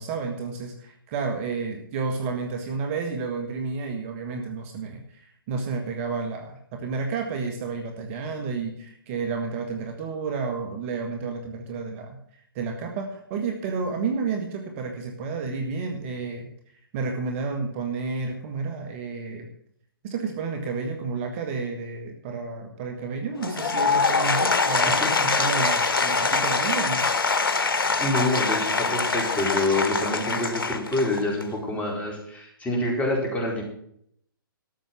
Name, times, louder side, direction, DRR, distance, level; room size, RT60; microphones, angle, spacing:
voice 1, 0.0-12.2 12.6-16.5 16.9-19.5 20.0-27.1, right 4 dB, 35° right, 4 dB, 1.8 m, -31 dB
Applause / Crowd, 23.3-31.6, left 4 dB, 75° left, 1.4 m, -24 dB
voice 2, 24.7-25.1 28.0-33.6, left 2 dB, 10° left, -1 dB, 4.3 m, -27 dB
13.0 x 7.5 x 7.5 m, 0.67 s
figure-of-eight pair, 130°, 12 cm